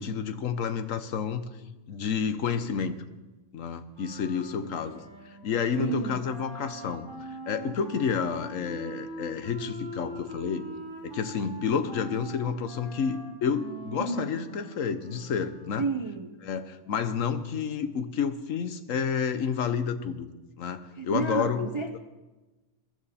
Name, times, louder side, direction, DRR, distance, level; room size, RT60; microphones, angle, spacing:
voice 1, 0.0-1.4 1.9-3.0 3.5-5.0 5.4-10.7 11.0-15.8 16.4-20.3 20.6-22.0, left 6 dB, 65° left, 10 dB, 1.3 m, -30 dB
Wind instrument woodwind instrument, 3.9-16.0, right 1 dB, 20° right, 3.3 m, -43 dB
voice 2, 5.8-6.2 14.0-14.3 15.8-16.4 21.0-22.0, right 4 dB, 35° right, 7 dB, 0.5 m, -31 dB
21.0 x 13.0 x 4.3 m, 1.1 s
omnidirectional pair, 1.5 m